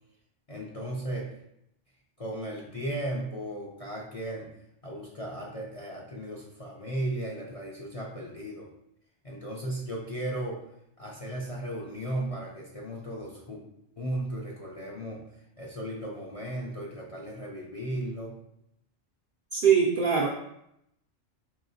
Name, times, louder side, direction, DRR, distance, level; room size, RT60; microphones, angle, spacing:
voice 1, 0.5-1.3 2.2-4.5 4.8-8.7 9.2-10.7 11.0-13.6 14.0-15.2 15.6-18.4, right 1 dB, 40° left, -3 dB, 0.5 m, -35 dB
voice 2, 19.5-20.3, right 7 dB, 60° right, -1 dB, 0.5 m, -22 dB
4.7 x 3.1 x 2.7 m, 0.78 s
omnidirectional pair, 1.3 m